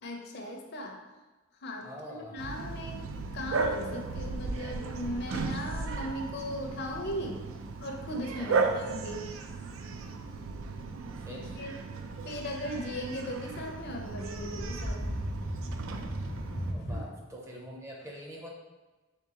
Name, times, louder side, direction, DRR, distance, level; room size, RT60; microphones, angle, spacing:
voice 1, 0.0-1.0 1.6-3.0 3.3-7.4 7.8-9.3 11.3-11.7 12.2-15.3 16.9-17.0, left 1 dB, 55° left, 2 dB, 0.5 m, -38 dB
voice 2, 1.8-2.4 8.4-8.8 11.2-11.6 16.7-18.5, equal, 15° right, -1 dB, 0.5 m, -44 dB
Bark, 2.4-16.7, right 4 dB, 85° right, 0.4 m, -36 dB
sound 1, 13.4-17.0, equal, 40° right, 0.8 m, -36 dB
3.6 x 3.5 x 2.8 m, 1.2 s
head